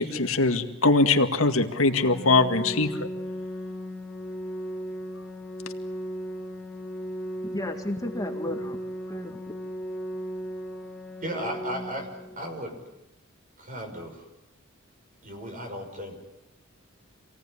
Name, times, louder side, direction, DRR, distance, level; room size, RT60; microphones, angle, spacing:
voice 1, 0.0-3.1, left 3 dB, 75° left, 6 dB, 2.1 m, -22 dB
Organ, 1.8-12.8, equal, ahead, 2.1 m, -36 dB
voice 2, 7.4-9.5, left 1 dB, 15° left, 4 dB, 2.0 m, -34 dB
voice 3, 11.2-12.1 12.4-12.7 13.6-14.3 15.2-16.2, right 1 dB, 40° right, 4 dB, 5.7 m, -35 dB
27.5 x 18.0 x 10.0 m, 0.94 s
head